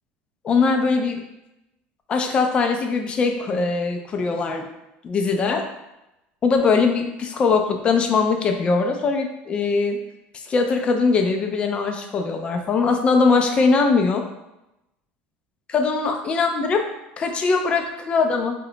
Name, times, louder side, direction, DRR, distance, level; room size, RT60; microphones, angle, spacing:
voice 1, 0.4-1.2 2.1-4.7 5.0-5.7 6.4-10.0 10.5-14.2 15.7-16.8 17.2-18.5, left 4 dB, 25° left, 4 dB, 0.3 m, -21 dB
2.8 x 2.1 x 3.8 m, 0.91 s
cardioid pair, 150°, 4 cm